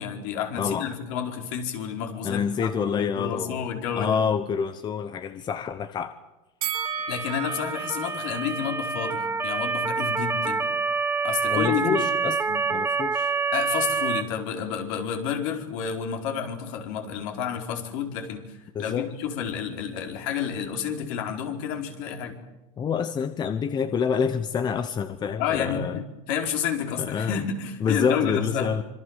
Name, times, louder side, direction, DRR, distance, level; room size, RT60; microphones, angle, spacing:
voice 1, 0.0-4.2 7.1-10.7 11.2-12.1 12.5-12.7 13.5-22.4 25.4-28.7, left 8 dB, 60° left, 4 dB, 4.7 m, -30 dB
voice 2, 2.2-3.6 3.9-6.1 11.5-12.4 12.7-13.3 18.7-19.1 22.8-26.0 27.0-27.4 27.8-28.8, left 6 dB, 25° left, 11 dB, 1.1 m, -27 dB
Bell, 6.6-9.8 10.1-10.3, right 7 dB, 80° right, 3.3 m, -35 dB
Motor vehicle (road) / Siren, 6.7-14.2, right 5 dB, 10° right, 1.5 m, -27 dB
26.5 x 24.0 x 7.5 m, 1.0 s
supercardioid pair, 140°, 19 cm